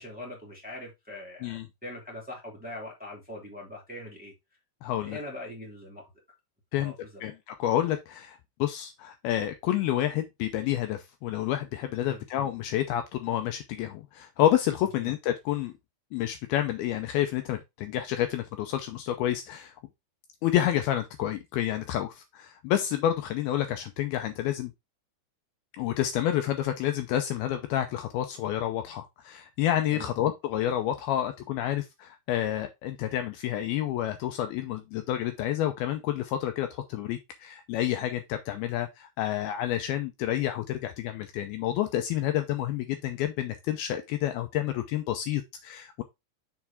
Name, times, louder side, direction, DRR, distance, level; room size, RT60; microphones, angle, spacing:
voice 1, 0.0-4.3 5.0-6.1 6.7-7.2 12.0-12.2 15.0-15.1 29.9-30.1, left 1 dB, 5° right, 0.7 m, -42 dB
voice 2, 4.8-5.2 6.7-6.9 7.2-15.7 16.1-19.7 20.4-24.7 25.7-46.0, left 12 dB, 85° left, 2.1 m, -29 dB
6.6 x 4.7 x 3.5 m
omnidirectional pair, 5.1 m